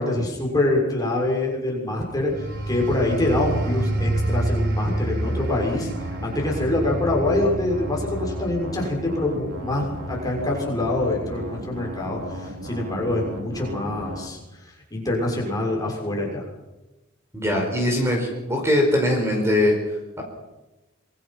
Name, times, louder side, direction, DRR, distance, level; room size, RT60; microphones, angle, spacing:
voice 1, 0.0-5.9 6.2-16.5, left 2 dB, 15° left, -1 dB, 6.7 m, -25 dB
sound 1, 2.2-12.5 13.0-13.2, right 1 dB, 55° right, 4.1 m, -29 dB
sound 2, 5.2-14.3, right 1 dB, 80° right, 4.7 m, -36 dB
voice 2, 17.3-19.8, left 1 dB, 10° right, 1 dB, 5.2 m, -21 dB
26.5 x 23.5 x 5.9 m, 1.0 s
head